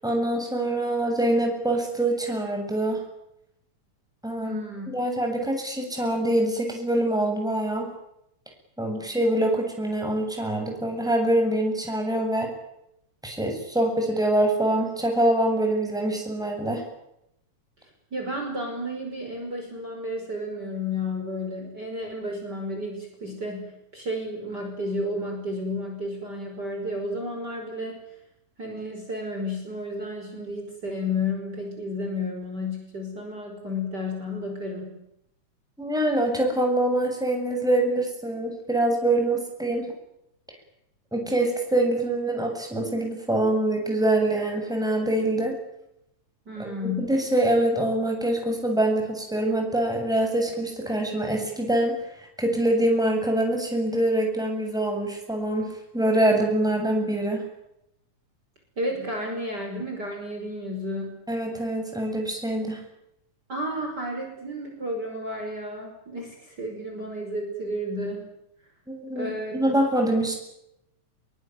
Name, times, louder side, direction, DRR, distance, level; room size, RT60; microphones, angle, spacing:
voice 1, 0.0-3.0 4.2-4.6 4.9-7.9 8.8-12.5 13.2-16.8 35.8-39.9 41.1-45.6 46.6-46.7 47.0-55.7 55.9-57.4 61.3-62.8 68.9-70.3, right 1 dB, ahead, 2 dB, 7.7 m, -24 dB
voice 2, 4.4-4.9 18.1-28.0 28.6-35.0 46.5-47.1 58.8-61.2 63.5-68.2 69.2-69.6, left 1 dB, 30° right, 2 dB, 6.1 m, -32 dB
25.0 x 23.5 x 9.5 m, 0.81 s
omnidirectional pair, 3.6 m